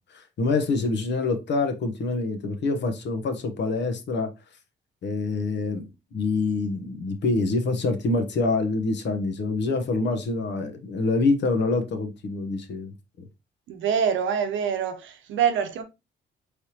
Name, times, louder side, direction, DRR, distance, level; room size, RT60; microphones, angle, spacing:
voice 1, 0.1-4.3 5.0-13.3, left 3 dB, 60° left, 1.0 m, -26 dB
voice 2, 13.7-15.8, right 7 dB, 75° right, 0.9 m, -25 dB
4.4 x 3.4 x 2.9 m
cardioid pair, 90°, 20 cm